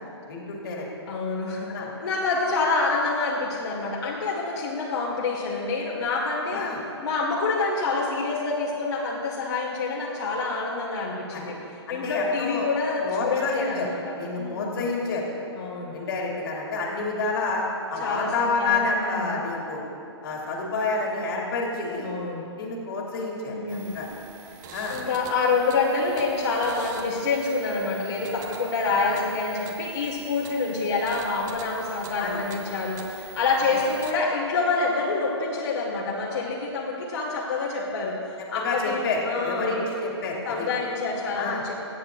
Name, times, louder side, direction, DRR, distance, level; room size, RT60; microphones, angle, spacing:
voice 1, 0.3-0.9 1.7-1.9 6.5-6.8 11.3-11.4 11.9-12.7 13.0-13.9 14.2-15.2 15.9-17.6 17.9-19.8 20.2-22.1 22.6-24.1 24.7-25.0 29.0-29.2 32.2-32.4 33.6-33.8 38.5-40.7 41.3-41.6, left 3 dB, 55° left, -2 dB, 2.6 m, -29 dB
voice 2, 1.1-1.7 2.0-6.7 7.0-11.6 11.9-14.8 15.5-16.0 18.0-19.4 22.0-22.5 23.5-23.9 24.9-39.9 40.5-41.7, left 3 dB, 70° left, -5 dB, 2.0 m, -27 dB
sound 1, 23.7-34.1, right 6 dB, 40° right, 1.1 m, -45 dB
23.5 x 8.4 x 2.6 m, 2.8 s
hypercardioid pair, 145°, 15 cm